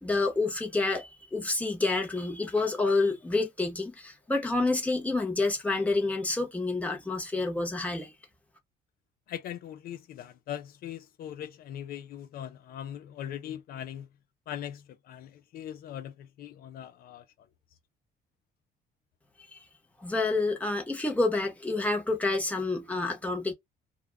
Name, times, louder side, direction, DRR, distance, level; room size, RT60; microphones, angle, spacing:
voice 1, 0.0-8.1 19.5-19.6 20.0-23.5, left 3 dB, 10° left, 1.0 m, -28 dB
voice 2, 9.3-14.1 14.5-17.2, left 10 dB, 60° left, 0.5 m, -40 dB
2.4 x 2.3 x 3.3 m
cardioid pair, 110°, 17 cm